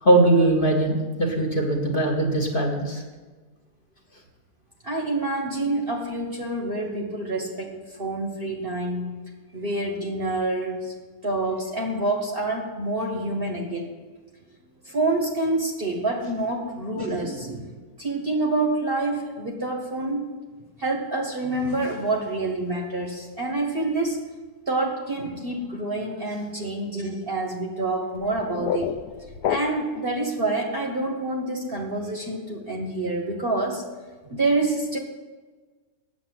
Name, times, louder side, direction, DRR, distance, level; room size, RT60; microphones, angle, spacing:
voice 1, 0.0-3.0, right 2 dB, 35° left, 0 dB, 1.6 m, -20 dB
voice 2, 4.8-9.1 9.5-10.9 11.2-13.9 14.8-20.3 20.8-24.2 24.7-28.9 29.5-33.8 34.3-35.0, right 2 dB, 40° right, 1 dB, 1.2 m, -27 dB
sound 1, 28.2-30.1, left 9 dB, 75° left, 1.1 m, -29 dB
8.7 x 7.2 x 7.7 m, 1.3 s
omnidirectional pair, 1.7 m